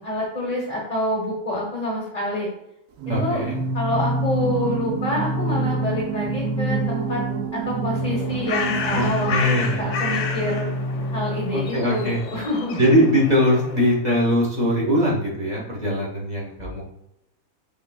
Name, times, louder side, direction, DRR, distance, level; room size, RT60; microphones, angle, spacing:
voice 1, 0.0-2.5 3.2-3.4 3.7-7.2 7.5-9.3 9.8-10.7 11.1-12.8, left 1 dB, 30° left, -3 dB, 0.9 m, -27 dB
Singing, 3.0-11.9, right 2 dB, 85° right, 1.2 m, -27 dB
voice 2, 3.1-3.6 8.9-9.8 11.5-12.2 12.8-16.8, equal, 30° right, -4 dB, 1.2 m, -21 dB
Bird, 7.9-14.0, left 6 dB, 60° left, 0.9 m, -31 dB
5.3 x 4.4 x 2.3 m, 0.85 s
omnidirectional pair, 1.6 m